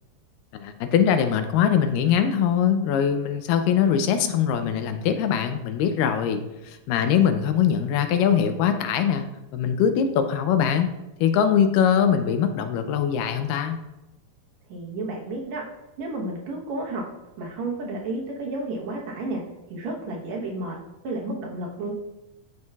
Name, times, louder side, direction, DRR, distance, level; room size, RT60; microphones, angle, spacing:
voice 1, 0.5-9.3 9.5-10.9 11.2-13.8, left 8 dB, 85° left, 8 dB, 2.2 m, -22 dB
voice 2, 14.7-15.6 16.0-17.0 17.4-19.4 19.7-20.8 21.0-21.9, right 2 dB, 65° right, -2 dB, 2.1 m, -31 dB
12.0 x 4.6 x 2.3 m, 0.96 s
omnidirectional pair, 3.8 m